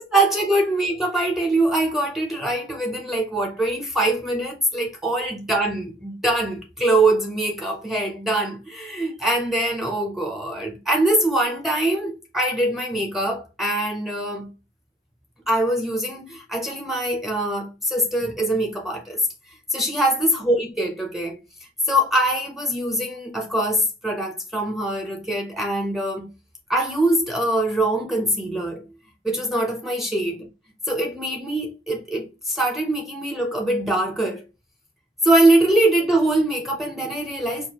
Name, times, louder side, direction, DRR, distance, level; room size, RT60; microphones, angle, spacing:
voice 1, 0.0-14.5 15.5-19.3 19.7-21.4 21.9-26.3 26.7-28.8 29.2-30.3 30.9-34.4 35.2-37.7, right 1 dB, ahead, 0.5 m, -23 dB
4.5 x 2.3 x 2.8 m
head